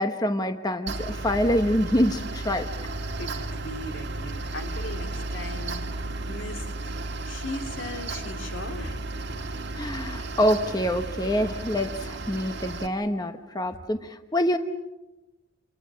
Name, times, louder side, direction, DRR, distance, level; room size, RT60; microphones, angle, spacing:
voice 1, 0.0-2.7 9.8-14.6, equal, 20° left, 7 dB, 1.0 m, -26 dB
Mechanical fan, 0.9-12.9, right 2 dB, 60° right, 1.8 m, -34 dB
voice 2, 3.2-5.8 6.3-7.0 7.2-9.0, left 2 dB, 80° left, 5 dB, 3.0 m, -38 dB
30.0 x 23.5 x 6.3 m, 1.0 s
head